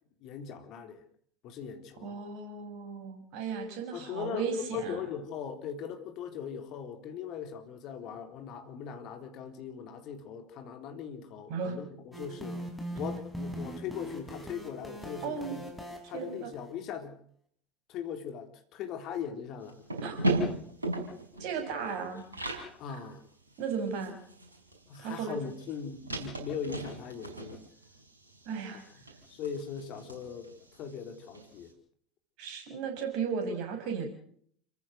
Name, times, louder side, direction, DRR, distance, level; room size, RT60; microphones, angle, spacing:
voice 1, 0.2-1.0 1.4-2.2 3.9-12.6 12.9-15.6 16.1-17.2 17.9-19.8 22.8-23.3 24.9-27.6 28.7-28.8 29.3-31.7, left 7 dB, 45° left, 6 dB, 3.7 m, -40 dB
voice 2, 2.0-5.0 11.5-11.8 15.2-15.6 16.0-16.5 20.0-20.2 21.4-22.2 23.6-24.2 25.0-25.4 28.4-28.8 32.4-34.1, right 6 dB, 50° right, 5 dB, 6.6 m, -35 dB
sound 1, 12.1-16.7, equal, ahead, 6.1 m, -41 dB
sound 2, 19.6-22.7 23.1-23.2 23.5-31.5, right 1 dB, 80° right, 5.3 m, -37 dB
29.5 x 14.5 x 6.4 m, 0.62 s
figure-of-eight pair, 75°, 0 cm